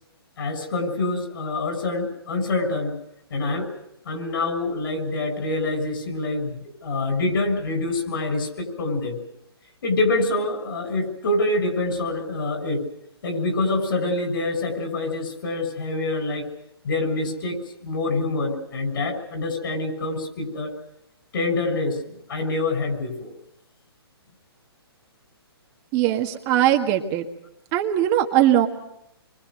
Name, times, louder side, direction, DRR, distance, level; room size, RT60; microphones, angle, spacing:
voice 1, 0.4-2.9 3.3-3.7 4.0-9.2 9.8-12.9 13.2-16.5 16.8-20.7 21.3-22.0 22.3-23.3, left 2 dB, 60° left, 5 dB, 6.9 m, -26 dB
voice 2, 25.9-27.2 27.7-28.7, right 12 dB, 30° right, 4 dB, 1.7 m, -20 dB
26.5 x 24.0 x 6.6 m, 0.77 s
hypercardioid pair, 140°, 13 cm